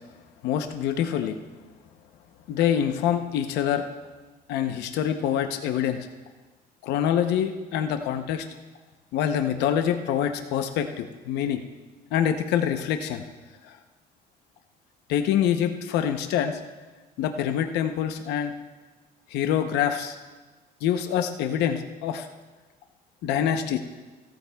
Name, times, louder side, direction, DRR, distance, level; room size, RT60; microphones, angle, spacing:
voice 1, 0.4-1.4 2.5-3.8 4.5-6.1 6.8-8.4 9.1-11.6 12.1-13.2 13.7-13.8 15.1-16.6 17.2-18.5 19.3-20.2 20.8-22.3 23.2-23.8, left 9 dB, 85° left, 7 dB, 0.8 m, -25 dB
17.0 x 13.0 x 2.3 m, 1.3 s
cardioid pair, 110°, 17 cm